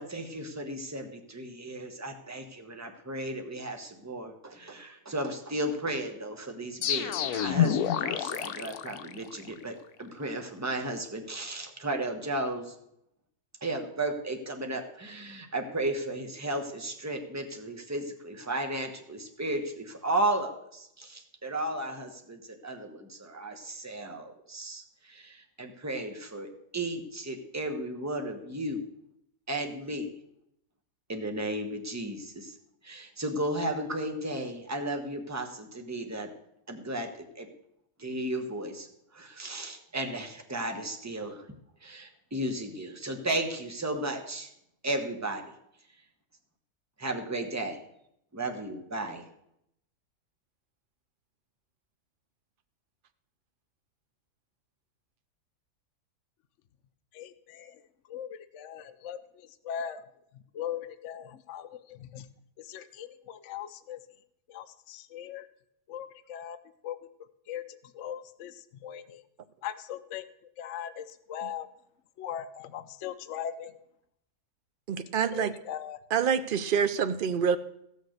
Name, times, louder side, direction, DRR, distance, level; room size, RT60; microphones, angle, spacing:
voice 1, 0.0-12.7 13.6-28.8 29.5-30.1 31.1-32.5 32.8-36.3 36.7-37.5 38.0-38.9 39.1-41.4 41.8-44.5 44.8-45.4 47.0-47.8 48.3-49.2, right 1 dB, 10° right, 4 dB, 1.1 m, -34 dB
sound 1, 6.8-9.6, left 10 dB, 80° left, 1.2 m, -28 dB
voice 2, 57.2-57.7 58.1-58.3 58.5-59.2 59.7-60.0 60.5-62.2 62.7-64.0 64.5-65.5 65.9-66.6 66.8-67.0 67.5-67.6 68.0-68.5 68.8-69.2 69.6-70.2 70.6-71.7 72.2-73.7 75.3-76.0, left 9 dB, 60° left, 10 dB, 0.8 m, -39 dB
voice 3, 74.9-75.5 76.1-77.6, right 7 dB, 75° right, 11 dB, 0.4 m, -27 dB
14.5 x 6.5 x 6.5 m, 0.77 s
omnidirectional pair, 1.6 m